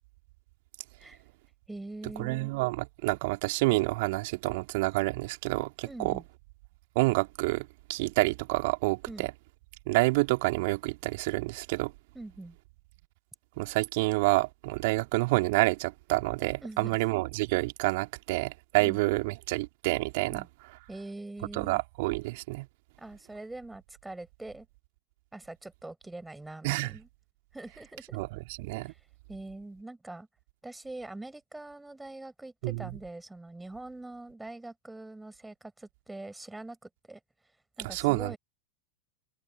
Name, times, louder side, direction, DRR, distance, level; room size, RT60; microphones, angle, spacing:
voice 1, 1.7-2.5 5.8-6.2 9.1-9.3 12.1-12.6 16.6-17.0 18.8-19.0 20.3-20.5 20.9-21.8 23.0-24.7 25.3-27.1 27.5-28.2 28.9-29.0 29.3-30.3 30.6-37.2 37.8-38.4, right 2 dB, 5° right, 6.9 m, -43 dB
voice 2, 2.2-6.2 6.9-9.3 9.9-11.9 13.6-20.4 21.5-22.7 26.6-26.9 28.1-28.9 32.6-33.0 37.8-38.4, right 23 dB, 50° right, 3.1 m, -28 dB
figure-of-eight pair, 90°, 0 cm